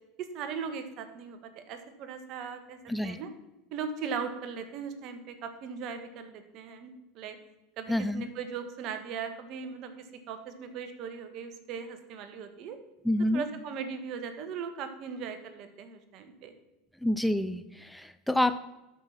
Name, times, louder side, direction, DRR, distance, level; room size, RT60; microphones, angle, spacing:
voice 1, 0.2-2.8 3.0-3.3 3.7-7.4 7.8-12.8 13.3-16.5, right 6 dB, 55° right, 8 dB, 1.6 m, -39 dB
voice 2, 7.9-8.3 13.0-13.4 17.0-18.6, left 1 dB, 5° left, 11 dB, 0.6 m, -28 dB
12.5 x 5.9 x 5.9 m, 1.0 s
hypercardioid pair, 85°, 0 cm